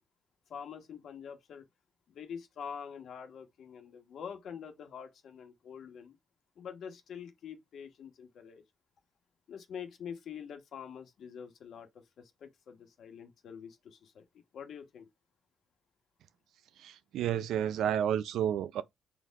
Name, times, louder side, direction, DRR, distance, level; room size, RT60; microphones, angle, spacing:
voice 1, 0.5-1.6 2.1-6.1 6.6-8.6 9.5-14.2 14.5-15.1, left 7 dB, 65° left, 1.2 m, -45 dB
voice 2, 16.8-18.8, right 10 dB, 80° right, 0.4 m, -31 dB
4.4 x 2.6 x 3.6 m
cardioid pair, 90°, 0 cm